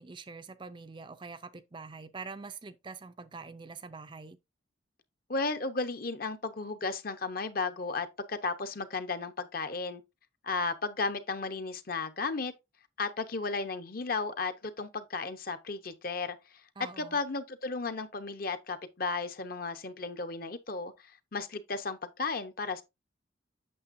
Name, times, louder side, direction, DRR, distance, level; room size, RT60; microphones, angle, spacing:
voice 1, 0.0-4.4 16.8-17.2, right 4 dB, 25° right, 0.5 m, -45 dB
voice 2, 5.3-10.0 10.4-12.5 13.0-16.4 17.0-22.8, left 3 dB, 50° left, 0.8 m, -34 dB
8.6 x 6.6 x 2.6 m
head